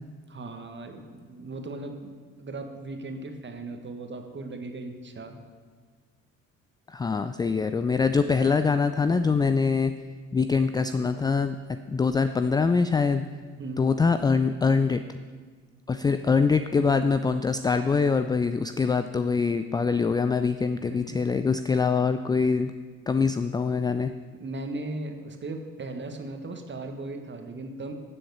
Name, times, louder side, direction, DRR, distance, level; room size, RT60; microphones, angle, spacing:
voice 1, 0.3-5.4 13.6-14.0 20.9-21.2 24.4-27.9, right 2 dB, 30° right, 5 dB, 1.7 m, -37 dB
voice 2, 6.9-9.9 10.3-11.6 11.9-13.2 13.8-15.2 15.9-22.7 23.1-24.1, left 5 dB, 10° left, 10 dB, 0.3 m, -24 dB
14.0 x 7.7 x 7.0 m, 1.5 s
figure-of-eight pair, 45°, 39 cm